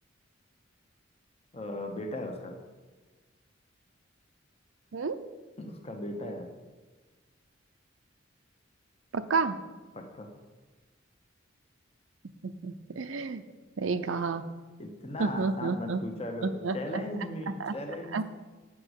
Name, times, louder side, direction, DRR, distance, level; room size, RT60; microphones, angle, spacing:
voice 1, 1.5-2.5 5.6-6.5 9.9-10.3 14.8-18.2, left 1 dB, 30° left, 3 dB, 1.0 m, -37 dB
voice 2, 9.1-9.6 12.4-13.4 13.8-14.4 15.2-16.0 16.4-17.0 17.6-17.8 18.1-18.2, right 4 dB, 80° right, 9 dB, 0.6 m, -30 dB
8.5 x 6.1 x 8.1 m, 1.3 s
head